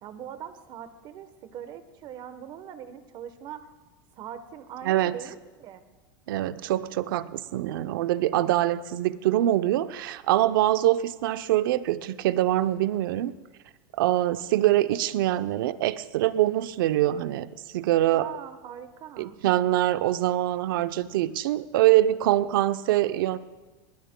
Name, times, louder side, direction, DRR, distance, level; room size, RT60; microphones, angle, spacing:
voice 1, 0.0-3.7 4.2-5.8 18.1-19.4, right 9 dB, 40° right, 10 dB, 1.0 m, -41 dB
voice 2, 6.3-13.3 13.9-17.5 17.7-18.3 19.2-23.4, right 14 dB, 80° right, 13 dB, 0.6 m, -24 dB
21.5 x 20.5 x 2.2 m, 1.2 s
supercardioid pair, 140°, 11 cm